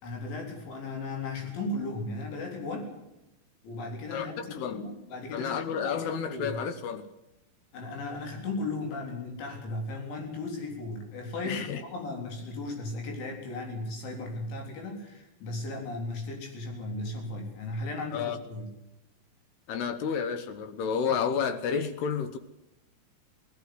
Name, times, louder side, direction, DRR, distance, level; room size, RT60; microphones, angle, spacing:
voice 1, 0.0-2.9 3.6-6.6 7.7-18.7, left 2 dB, 90° left, 2 dB, 6.2 m, -36 dB
voice 2, 4.1-4.8 5.3-7.1 11.4-11.8 18.1-18.4 19.7-22.4, left 7 dB, 70° left, 10 dB, 2.8 m, -31 dB
18.5 x 14.5 x 9.7 m, 0.92 s
omnidirectional pair, 5.2 m